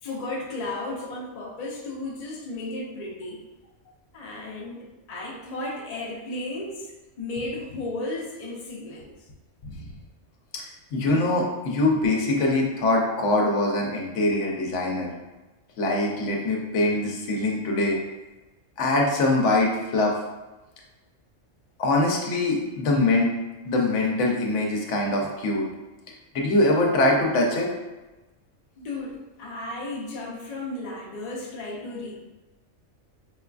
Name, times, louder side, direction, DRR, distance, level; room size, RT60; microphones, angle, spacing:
voice 1, 0.0-3.4 4.1-6.9 7.2-9.1 28.8-32.1, left 2 dB, 50° left, -3 dB, 0.5 m, -34 dB
voice 2, 10.5-15.1 15.8-18.0 18.8-20.1 21.8-23.3 23.6-25.7 26.3-27.7, left 2 dB, 70° left, -1 dB, 0.9 m, -23 dB
4.4 x 2.4 x 2.3 m, 1.1 s
omnidirectional pair, 1.4 m